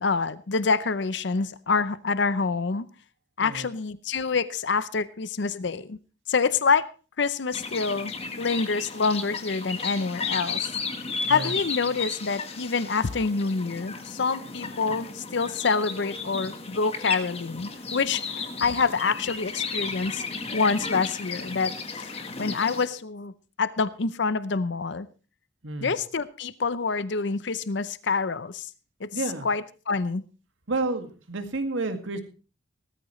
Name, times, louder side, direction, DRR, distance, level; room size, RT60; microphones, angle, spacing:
voice 1, 0.0-2.9 3.4-6.0 6.3-6.9 7.2-8.1 8.4-10.7 11.3-20.2 20.5-23.3 23.6-25.1 25.8-28.7 29.0-30.2, left 4 dB, 65° left, 15 dB, 0.6 m, -27 dB
sound 1, 7.5-22.8, left 4 dB, 30° left, 1.4 m, -34 dB
voice 2, 25.6-26.0 29.1-29.5 30.7-32.2, right 2 dB, 80° right, 7 dB, 2.0 m, -30 dB
18.0 x 13.5 x 3.1 m, 0.35 s
head